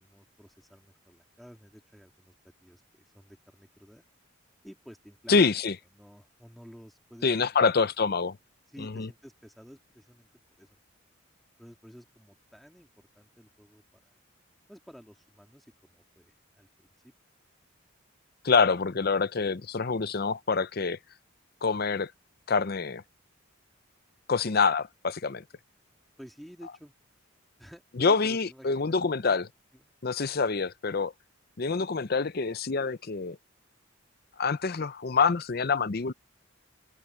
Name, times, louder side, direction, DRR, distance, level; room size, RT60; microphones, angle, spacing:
voice 1, 0.0-2.3 2.6-4.0 4.6-5.6 5.9-7.7 8.7-10.3 10.6-10.8 11.6-14.2 14.7-17.1 26.2-26.9 27.6-29.4 29.7-29.8, equal, ahead, 2.0 m, -52 dB
voice 2, 5.3-5.7 7.2-8.4 8.8-9.1 18.4-21.0 21.6-22.1 22.5-23.0 24.3-25.4 28.0-29.4 30.0-31.1 31.6-33.4 34.4-36.1, left 4 dB, 45° left, 0.6 m, -26 dB
open air
head